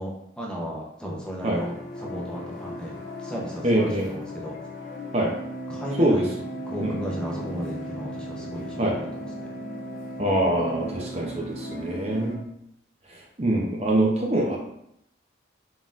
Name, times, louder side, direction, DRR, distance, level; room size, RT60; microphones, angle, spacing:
voice 1, 0.0-4.6 5.7-6.2 6.7-9.6, equal, 5° left, -3 dB, 0.7 m, -35 dB
sound 1, 1.4-12.3, equal, 40° left, 1.1 m, -36 dB
voice 2, 3.6-4.1 5.1-5.3 6.0-6.3 6.8-7.0 8.8-9.0 10.2-12.4 13.4-14.6, right 1 dB, 35° right, -1 dB, 0.6 m, -24 dB
3.9 x 3.9 x 2.4 m, 0.75 s
head